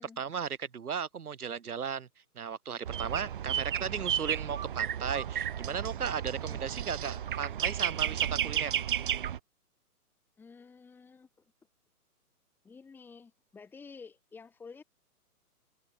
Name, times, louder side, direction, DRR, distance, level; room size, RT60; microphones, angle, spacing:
voice 1, 0.0-2.1 2.4-8.7, right 7 dB, 75° right, 3.1 m, -36 dB
sound 1, 2.9-9.4, right 9 dB, 35° right, 1.9 m, -33 dB
voice 2, 10.4-11.3 12.6-14.8, left 5 dB, 5° left, 4.9 m, -51 dB
hypercardioid pair, 175°, 45 cm